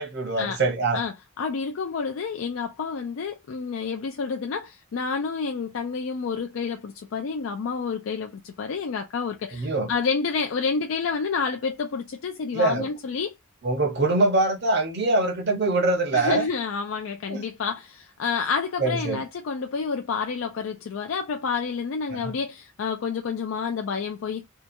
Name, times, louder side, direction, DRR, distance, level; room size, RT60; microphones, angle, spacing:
voice 1, 0.0-1.0 9.5-9.9 12.5-12.9 13.6-16.5 17.3-17.5 18.8-19.2 22.1-22.3, right 2 dB, 50° right, 0.7 m, -23 dB
voice 2, 0.9-13.3 16.1-24.5, left 5 dB, 70° left, 0.4 m, -29 dB
2.7 x 2.3 x 2.5 m
head